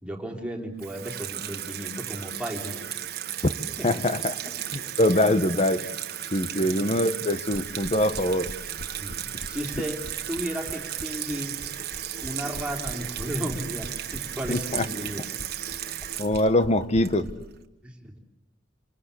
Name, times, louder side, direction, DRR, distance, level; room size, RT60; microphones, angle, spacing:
voice 1, 0.0-2.8 3.8-4.0 4.4-4.5 6.6-7.0 9.0-10.0 10.3-11.6 12.2-15.3 17.8-18.2, equal, 5° right, 1 dB, 3.2 m, -34 dB
Water tap faucet / Sink (filling or washing), 0.8-17.5, right 11 dB, 55° right, 1.5 m, -35 dB
voice 2, 3.8-4.3 5.0-5.8 6.3-8.5 14.5-14.8 16.2-17.3, left 1 dB, 35° left, 12 dB, 1.2 m, -23 dB
sound 1, 7.5-17.3, equal, 55° left, 2.0 m, -40 dB
27.0 x 24.0 x 8.5 m, 0.91 s
head